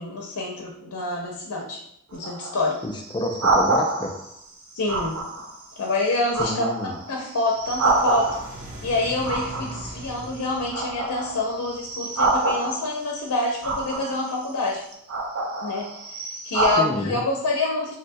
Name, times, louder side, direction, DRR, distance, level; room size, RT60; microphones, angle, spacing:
voice 1, 0.0-1.8 2.1-2.8 4.7-5.2 5.8-6.6 7.1-8.4 8.8-14.8 15.6-16.2 16.4-18.0, left 2 dB, 85° left, -2 dB, 0.5 m, -26 dB
sound 1, 2.1-4.3 4.9-5.6 6.0-8.7 9.2-10.3 10.7-13.0 13.6-14.3 14.9-16.8, right 3 dB, 85° right, 0.7 m, -26 dB
voice 2, 2.8-4.1 6.4-6.9 16.8-17.2, left 1 dB, 20° left, 3 dB, 0.3 m, -29 dB
sound 2, 7.4-12.5, right 1 dB, 40° right, 1.3 m, -41 dB
3.7 x 2.2 x 2.6 m, 0.75 s
head